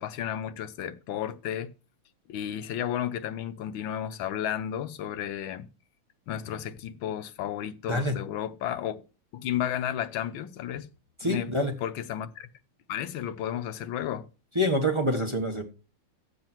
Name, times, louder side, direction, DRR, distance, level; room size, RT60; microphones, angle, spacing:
voice 1, 0.0-1.7 2.3-5.7 6.3-9.0 9.3-10.9 11.2-11.5 11.8-12.5 12.9-14.3, left 10 dB, 90° left, 1.6 m, -33 dB
voice 2, 7.9-8.2 11.2-11.7 14.5-15.6, equal, 15° right, 1.3 m, -26 dB
11.5 x 7.7 x 4.5 m
omnidirectional pair, 2.1 m